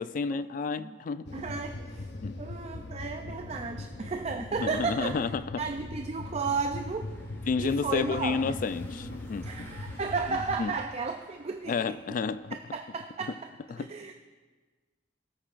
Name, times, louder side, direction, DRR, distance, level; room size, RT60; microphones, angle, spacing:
voice 1, 0.0-1.3 2.2-2.4 4.6-5.6 7.5-9.5 10.3-10.7 11.7-12.6 13.7-13.9, left 5 dB, 50° left, 15 dB, 0.3 m, -31 dB
sound 1, 1.3-10.8, left 2 dB, 85° left, 0.7 m, -40 dB
voice 2, 1.3-2.1 2.4-5.2 5.6-7.1 7.6-8.4 9.4-12.2 12.5-13.4 13.8-14.1, right 4 dB, 35° right, 5 dB, 0.4 m, -34 dB
Car passing by / Engine, 6.0-12.7, equal, 15° left, 1.6 m, -53 dB
18.0 x 8.8 x 2.5 m, 1.4 s
head